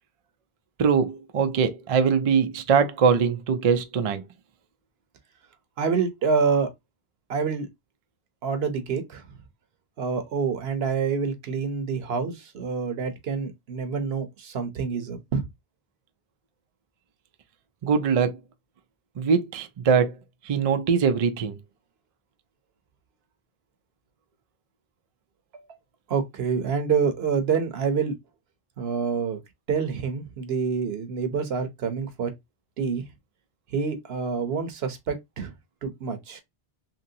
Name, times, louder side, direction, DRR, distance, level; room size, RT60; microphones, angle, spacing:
voice 1, 0.8-4.2 17.8-18.4 19.2-20.1 20.5-21.6, right 6 dB, 55° right, 0.4 m, -22 dB
voice 2, 5.8-6.7 7.3-7.7 8.4-9.2 10.0-15.4 26.1-28.1 28.8-29.4 29.7-32.3 32.8-33.0 33.7-35.5 35.8-36.4, right 5 dB, 70° right, 1.0 m, -27 dB
2.9 x 2.8 x 2.6 m
omnidirectional pair, 1.1 m